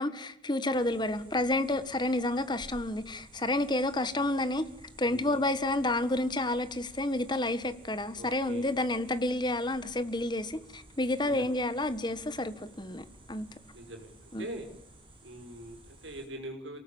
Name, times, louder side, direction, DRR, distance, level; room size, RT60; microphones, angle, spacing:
voice 1, 0.0-4.7 5.0-13.5 14.3-14.5, left 1 dB, 25° left, 1.3 m, -30 dB
sound 1, 0.7-16.3, right 1 dB, 25° right, 7.5 m, -54 dB
voice 2, 5.0-5.4 8.1-8.7 11.2-11.5 13.7-14.7 15.2-16.8, right 1 dB, 80° right, 5.5 m, -43 dB
28.0 x 18.5 x 8.6 m
head